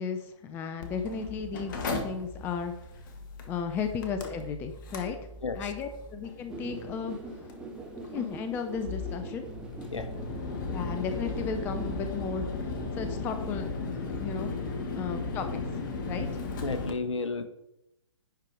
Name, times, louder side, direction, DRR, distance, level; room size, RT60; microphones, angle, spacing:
voice 1, 0.0-2.7 3.5-5.2 5.5-7.2 8.0-9.5 10.7-12.5 12.9-14.5 14.9-16.3, left 6 dB, 10° left, 8 dB, 0.5 m, -35 dB
Mechanical fan, 0.8-16.9, left 3 dB, 40° left, 1.3 m, -36 dB
sound 1, 6.5-12.0, right 3 dB, 5° right, 1.0 m, -43 dB
voice 2, 16.6-17.5, left 4 dB, 65° left, 9 dB, 1.1 m, -32 dB
10.5 x 4.5 x 4.8 m, 0.82 s
figure-of-eight pair, 125°, 17 cm